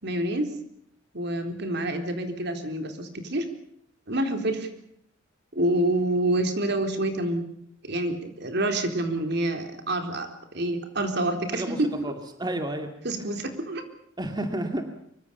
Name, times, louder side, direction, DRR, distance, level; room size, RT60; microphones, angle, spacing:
voice 1, 0.0-0.5 1.1-3.5 4.1-4.7 5.5-7.4 7.8-12.0 13.0-13.8, right 1 dB, 60° right, 6 dB, 3.9 m, -27 dB
voice 2, 11.5-12.9 13.2-13.3 14.2-14.8, right 1 dB, 20° right, 6 dB, 2.0 m, -31 dB
25.0 x 23.5 x 7.0 m, 0.71 s
head